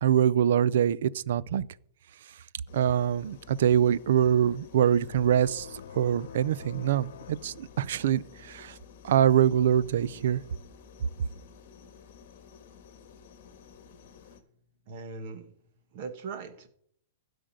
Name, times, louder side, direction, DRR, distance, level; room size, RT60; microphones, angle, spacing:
voice 1, 0.0-1.7 2.7-5.7 5.9-8.7 9.0-10.4, right 9 dB, 55° right, 0.4 m, -24 dB
sound 1, 2.7-14.4, left 6 dB, 40° left, 1.4 m, -52 dB
sound 2, 5.0-8.4, left 7 dB, 85° left, 0.9 m, -46 dB
voice 2, 14.9-15.5 15.9-16.7, right 4 dB, 35° right, 1.5 m, -39 dB
12.5 x 5.1 x 7.7 m
supercardioid pair, 180°, 0 cm